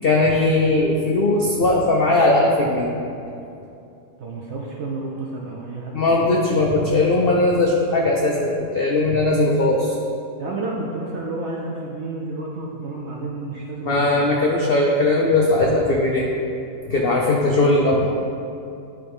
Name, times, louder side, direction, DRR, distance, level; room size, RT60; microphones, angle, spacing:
voice 1, 0.0-2.9 5.9-10.0 13.8-16.3 16.9-18.1, left 2 dB, 85° left, -2 dB, 0.5 m, -19 dB
voice 2, 4.2-6.2 10.4-14.3, right 2 dB, 65° right, -2 dB, 0.7 m, -31 dB
10.5 x 3.4 x 3.5 m, 2.6 s
omnidirectional pair, 1.8 m